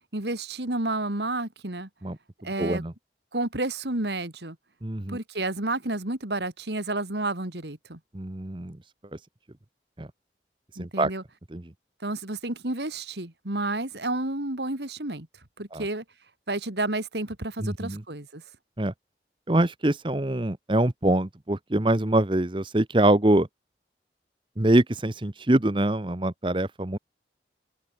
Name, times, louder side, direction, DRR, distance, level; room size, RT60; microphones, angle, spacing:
voice 1, 0.1-1.9 2.4-2.8 3.3-4.6 5.1-8.0 10.8-11.2 12.0-15.3 15.6-16.0 16.5-18.4, right 2 dB, 80° right, 3.0 m, -30 dB
voice 2, 2.6-2.9 4.8-5.2 8.1-8.8 10.0-10.1 10.8-11.1 11.5-11.6 15.7-15.8 17.6-18.0 18.8-18.9 19.5-23.5 24.6-27.0, right 1 dB, 30° right, 0.9 m, -24 dB
open air
head